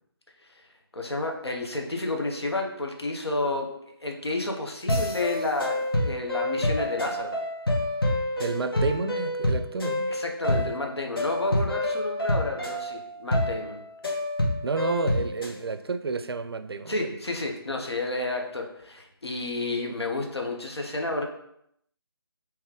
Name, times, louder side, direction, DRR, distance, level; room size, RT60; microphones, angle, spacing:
voice 1, 0.9-3.7 4.0-7.4 10.1-13.8 16.9-21.3, left 2 dB, 85° left, 2 dB, 0.7 m, -31 dB
sound 1, 4.9-15.6, left 1 dB, 65° left, 1.0 m, -28 dB
voice 2, 8.4-10.1 10.4-10.7 14.6-17.1, right 4 dB, 70° right, 10 dB, 0.4 m, -30 dB
3.1 x 2.9 x 3.6 m, 0.74 s
figure-of-eight pair, 150°, 13 cm